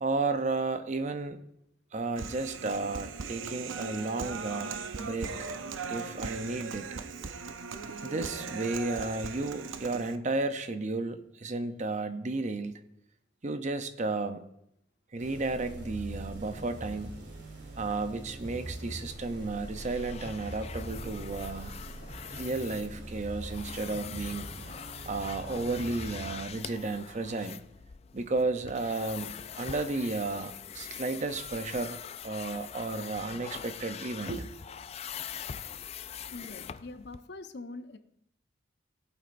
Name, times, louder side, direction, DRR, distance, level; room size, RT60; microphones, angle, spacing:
voice 1, 0.0-1.4 1.9-5.3 5.9-6.9 8.0-12.8 13.4-14.5 15.1-17.2 17.8-21.8 22.3-24.5 25.1-27.6 28.1-34.6, right 3 dB, 40° right, 9 dB, 0.6 m, -33 dB
Human voice, 2.2-10.2, right 5 dB, 80° right, 0.6 m, -39 dB
sound 1, 15.2-27.1, right 1 dB, 65° right, 2.7 m, -43 dB
sound 2, 18.4-37.2, left 8 dB, 30° left, 0.3 m, -44 dB
voice 2, 36.3-38.0, left 3 dB, 60° left, 9 dB, 0.7 m, -43 dB
18.0 x 8.0 x 2.6 m, 0.77 s
head